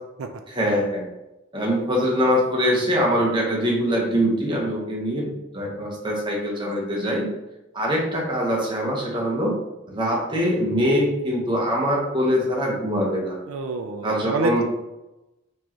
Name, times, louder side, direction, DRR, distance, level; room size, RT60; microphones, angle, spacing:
voice 1, 0.5-1.1 1.5-7.3 7.7-9.6 9.9-13.4 14.0-14.6, equal, 25° right, -2 dB, 0.9 m, -23 dB
voice 2, 13.5-14.6, right 3 dB, 90° right, 5 dB, 0.4 m, -27 dB
4.3 x 3.1 x 2.9 m, 0.96 s
head